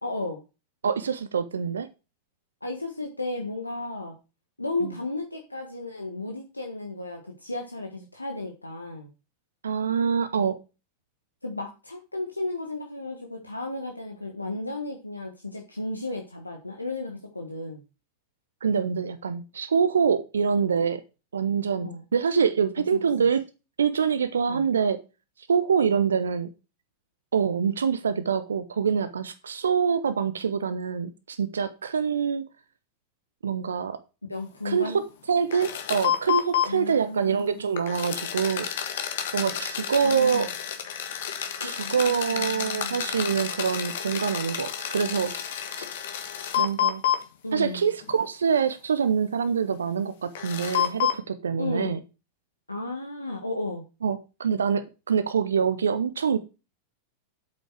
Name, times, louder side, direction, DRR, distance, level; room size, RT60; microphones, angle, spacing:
voice 1, 0.0-0.4 2.6-4.1 4.6-9.1 11.4-17.8 21.8-22.0 22.9-23.0 24.5-24.6 34.3-35.0 36.7-37.6 40.0-40.5 41.6-43.1 47.4-47.9 51.6-52.0 52.7-53.8, left 2 dB, 85° left, 2 dB, 1.5 m, -34 dB
voice 2, 0.8-1.9 4.8-4.9 9.6-10.6 18.6-21.0 21.3-23.4 23.8-25.0 25.5-26.5 27.3-32.4 33.4-34.0 34.6-34.9 35.3-38.7 39.3-40.5 41.6-45.3 45.8-45.9 46.6-47.0 47.5-52.0 54.0-56.4, right 6 dB, 70° right, 12 dB, 0.8 m, -25 dB
sound 1, 35.5-36.7 37.8-47.2 48.0-48.1 50.3-51.2, left 9 dB, 55° left, 1.6 m, -29 dB
8.4 x 7.8 x 4.8 m, 0.30 s
figure-of-eight pair, 90°, 0 cm